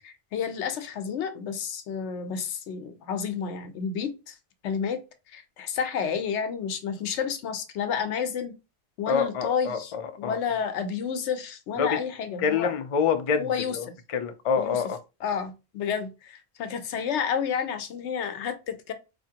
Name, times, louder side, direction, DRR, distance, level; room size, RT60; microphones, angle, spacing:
voice 1, 0.0-4.3 4.6-5.0 5.3-8.5 9.0-12.7 13.3-13.9 14.6-14.8 15.2-18.9, left 7 dB, 85° left, 1.0 m, -30 dB
voice 2, 9.1-10.4 11.8-12.0 12.4-13.8 14.1-15.0, left 6 dB, 50° left, 0.4 m, -26 dB
4.2 x 2.8 x 2.8 m
omnidirectional pair, 1.2 m